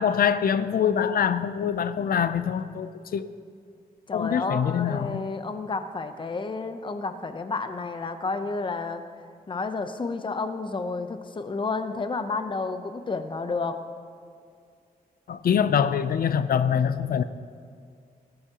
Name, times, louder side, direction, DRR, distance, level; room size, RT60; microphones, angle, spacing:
voice 1, 0.0-3.3 4.1-5.2 15.3-17.2, left 8 dB, 75° left, 13 dB, 0.5 m, -24 dB
voice 2, 4.1-9.0 9.5-13.8, left 3 dB, 30° left, 9 dB, 0.7 m, -31 dB
20.5 x 13.0 x 2.9 m, 2.3 s
wide cardioid pair, 175°, 16 cm